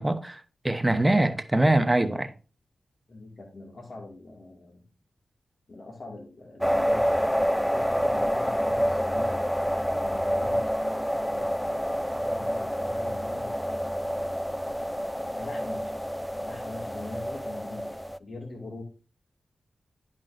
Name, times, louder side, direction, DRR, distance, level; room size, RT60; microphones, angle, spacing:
voice 1, 0.0-2.3, right 1 dB, 20° right, 1.1 m, -23 dB
voice 2, 3.1-4.9 5.7-9.5 10.0-10.7 11.3-13.8 15.3-18.8, left 2 dB, 60° left, 2.2 m, -43 dB
sound 1, 6.6-18.2, equal, ahead, 0.4 m, -28 dB
10.5 x 5.4 x 2.6 m
cardioid pair, 40°, 0 cm